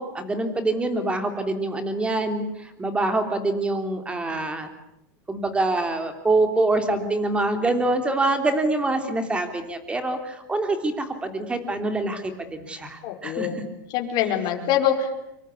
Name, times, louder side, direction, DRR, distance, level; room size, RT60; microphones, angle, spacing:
voice 1, 0.0-4.7 5.3-13.6, right 2 dB, 10° right, 7 dB, 3.3 m, -25 dB
voice 2, 13.0-13.6 13.9-15.2, left 9 dB, 45° left, 3 dB, 5.2 m, -24 dB
26.0 x 24.0 x 8.4 m, 0.84 s
supercardioid pair, 150°, 11 cm